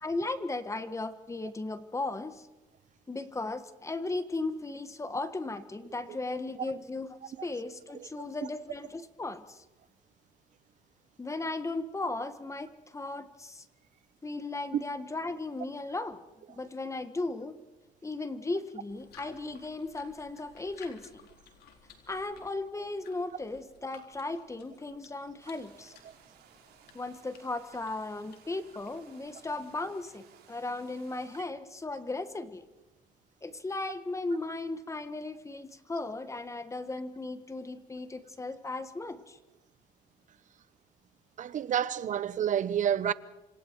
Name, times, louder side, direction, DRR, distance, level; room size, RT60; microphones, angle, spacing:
voice 1, 0.0-2.5 3.1-9.6 11.2-13.6 14.2-16.2 16.5-17.5 18.0-21.2 22.1-25.9 26.9-32.7 33.4-39.4, left 2 dB, 15° left, 1.4 m, -36 dB
sound 1, 18.9-29.7, left 7 dB, 70° left, 4.0 m, -58 dB
sound 2, 25.4-31.4, right 8 dB, 70° right, 4.6 m, -59 dB
voice 2, 41.4-43.1, right 9 dB, 50° right, 1.0 m, -28 dB
28.0 x 25.5 x 4.7 m
cardioid pair, 110°, 17 cm